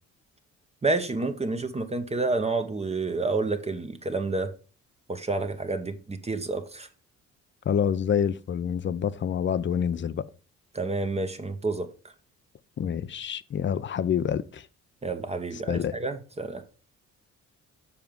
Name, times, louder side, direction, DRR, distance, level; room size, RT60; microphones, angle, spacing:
voice 1, 0.8-4.5 5.1-6.9 10.7-11.9 15.0-16.6, right 3 dB, 20° right, 0.9 m, -29 dB
voice 2, 7.7-10.2 12.8-14.7 15.5-16.0, left 8 dB, 40° left, 0.5 m, -27 dB
7.1 x 4.6 x 5.2 m
cardioid pair, 90°, 30 cm